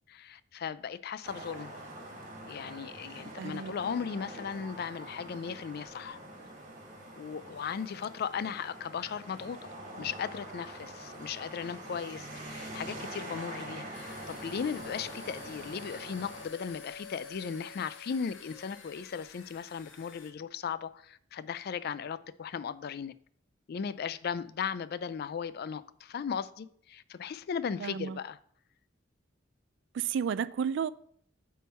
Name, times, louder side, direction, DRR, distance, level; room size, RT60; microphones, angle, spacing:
voice 1, 0.1-1.7 2.5-6.2 7.2-23.1 23.7-28.4, left 7 dB, 55° left, 0.3 m, -37 dB
sound 1, 1.2-16.5, right 1 dB, 40° right, 1.8 m, -45 dB
voice 2, 3.4-3.7 27.8-28.2 29.9-30.9, right 7 dB, 65° right, 0.3 m, -32 dB
sound 2, 13.9-20.3, left 5 dB, 75° left, 0.9 m, -49 dB
8.3 x 3.7 x 4.3 m
head